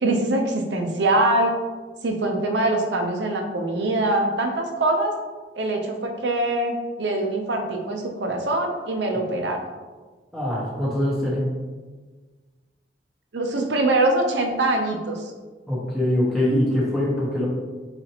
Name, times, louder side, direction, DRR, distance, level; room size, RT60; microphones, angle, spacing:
voice 1, 0.0-1.5 2.0-5.1 5.6-9.6 13.3-15.3, right 2 dB, 70° right, 3 dB, 0.7 m, -23 dB
voice 2, 10.3-11.4 15.7-17.5, left 1 dB, ahead, -8 dB, 0.9 m, -23 dB
4.3 x 4.0 x 2.9 m, 1.4 s
head